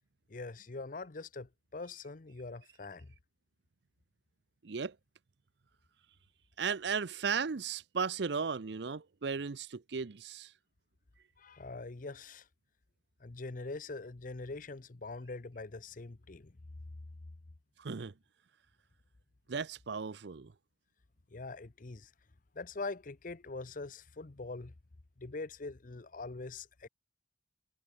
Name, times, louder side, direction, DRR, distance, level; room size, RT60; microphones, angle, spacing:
voice 1, 0.3-3.1 11.4-12.5 13.2-16.6 21.3-22.1 22.5-24.7 25.2-26.9, left 3 dB, 45° left, 0.8 m, -43 dB
voice 2, 4.6-4.9 6.6-10.5 17.8-18.1 19.5-20.5, right 5 dB, 65° right, 0.6 m, -36 dB
head